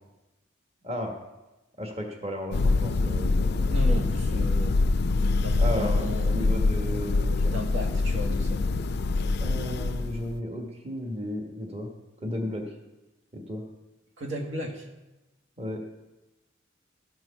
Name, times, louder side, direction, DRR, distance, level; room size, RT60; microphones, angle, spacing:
voice 1, 0.8-1.1 1.8-4.1 5.6-7.5 9.4-11.9 12.2-12.6 13.3-13.6 15.6-15.8, left 1 dB, 30° right, 2 dB, 1.4 m, -34 dB
Thunder, 2.5-10.4, left 3 dB, 55° left, 0.4 m, -25 dB
voice 2, 3.7-4.8 5.4-6.4 7.4-8.6 14.2-14.9, equal, 80° right, 2 dB, 1.7 m, -35 dB
13.5 x 6.1 x 5.8 m, 1.0 s
head